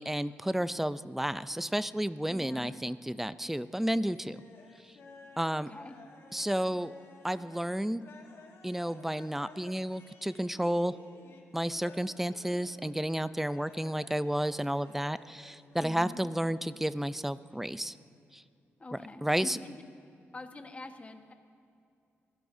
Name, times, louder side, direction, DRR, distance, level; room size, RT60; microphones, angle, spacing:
voice 1, 0.0-4.4 5.4-5.7 6.3-6.9 7.2-8.0 8.6-10.9 11.5-17.9 18.3-18.4 18.9-19.6, right 1 dB, 5° right, 14 dB, 0.4 m, -32 dB
voice 2, 2.3-2.7 5.7-5.9 15.8-16.2 18.8-19.8 20.3-21.3, left 2 dB, 25° left, 5 dB, 1.3 m, -44 dB
sound 1, 4.0-15.8, left 3 dB, 65° left, 2.0 m, -54 dB
24.5 x 16.5 x 2.7 m, 2.6 s
cardioid pair, 80°, 5 cm